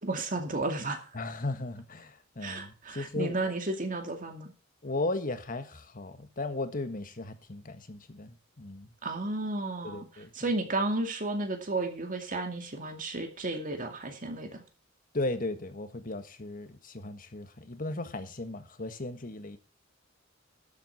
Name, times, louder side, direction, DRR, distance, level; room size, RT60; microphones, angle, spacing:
voice 1, 0.0-1.0 2.4-4.5 9.0-10.1 10.3-14.6, right 2 dB, 45° right, 2.4 m, -33 dB
voice 2, 1.1-3.5 4.8-8.9 9.8-10.3 15.1-19.6, left 2 dB, 45° left, 1.5 m, -36 dB
12.5 x 8.1 x 5.7 m
head